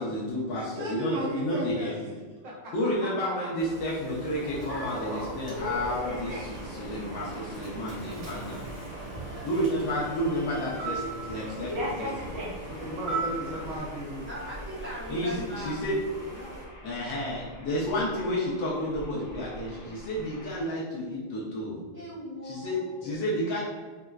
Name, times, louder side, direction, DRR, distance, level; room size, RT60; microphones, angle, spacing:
voice 1, 0.0-1.9 2.7-8.6 9.4-12.5 15.1-16.0 16.8-21.8 22.4-23.6, equal, 70° left, -5 dB, 1.3 m, -31 dB
voice 2, 0.5-2.7 12.7-14.3, right 1 dB, 70° right, -5 dB, 1.3 m, -36 dB
sound 1, 3.6-16.7, right 2 dB, 90° right, 2.0 m, -46 dB
Human voice / Subway metro underground, 4.3-13.8, right 2 dB, 50° right, 1.0 m, -36 dB
sound 2, 5.5-20.7, left 1 dB, 25° left, 0.9 m, -47 dB
voice 3, 14.3-15.8 16.2-16.6 21.9-23.3, equal, 10° right, -12 dB, 0.9 m, -40 dB
4.4 x 2.0 x 2.3 m, 1.4 s
omnidirectional pair, 2.3 m